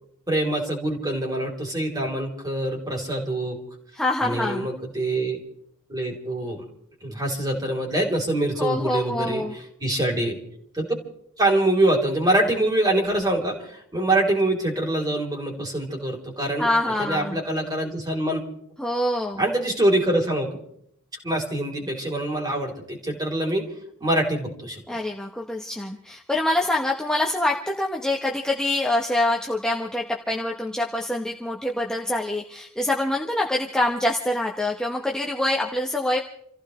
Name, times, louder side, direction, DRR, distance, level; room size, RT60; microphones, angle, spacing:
voice 1, 0.3-3.6 4.2-5.4 5.9-6.6 7.0-10.4 10.7-10.9 11.4-16.7 17.0-18.4 19.4-20.6 21.2-23.7 24.0-24.8, right 1 dB, 20° right, 1 dB, 3.4 m, -24 dB
voice 2, 3.9-4.7 8.6-9.5 16.6-17.4 18.8-19.4 24.9-36.2, left 1 dB, 5° left, -2 dB, 1.0 m, -25 dB
28.5 x 15.5 x 3.2 m, 0.69 s
head